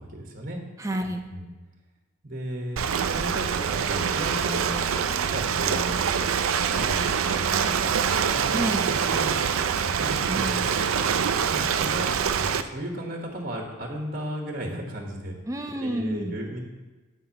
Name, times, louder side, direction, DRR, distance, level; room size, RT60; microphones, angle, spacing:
voice 1, 0.0-0.6 1.0-1.5 2.2-2.8 3.1-4.8 5.2-6.0 6.7-7.1 7.4-8.8 9.7-10.7 11.5-15.4 15.8-16.6, right 1 dB, 45° right, 1 dB, 1.3 m, -35 dB
voice 2, 0.8-1.3 8.5-9.5 10.2-10.6 15.5-16.4, right 1 dB, 15° right, 5 dB, 0.6 m, -30 dB
Ocean, 2.8-12.6, right 7 dB, 80° right, 0.4 m, -25 dB
16.0 x 5.5 x 2.9 m, 1.2 s
head